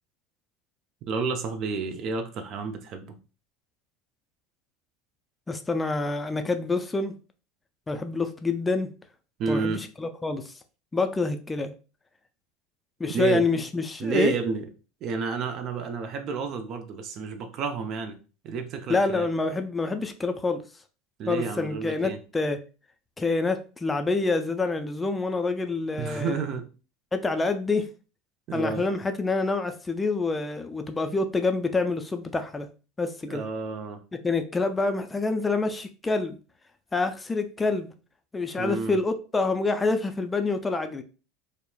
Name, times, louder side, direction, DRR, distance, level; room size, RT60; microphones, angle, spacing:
voice 1, 1.1-3.2 9.4-9.8 13.1-13.5 14.0-14.6 15.0-18.2 18.4-19.3 21.2-22.2 26.0-26.7 28.5-28.9 33.2-34.0 38.6-39.0, right 5 dB, 50° right, 0.4 m, -30 dB
voice 2, 5.5-7.1 7.9-8.9 9.5-10.5 10.9-11.7 13.0-14.3 18.9-20.6 21.3-22.6 23.2-26.4 27.1-27.9 28.5-32.7 33.0-33.4 34.2-36.4 36.9-37.9 38.3-41.0, left 3 dB, 15° left, 0.3 m, -27 dB
2.9 x 2.0 x 2.2 m
hypercardioid pair, 85°, 0 cm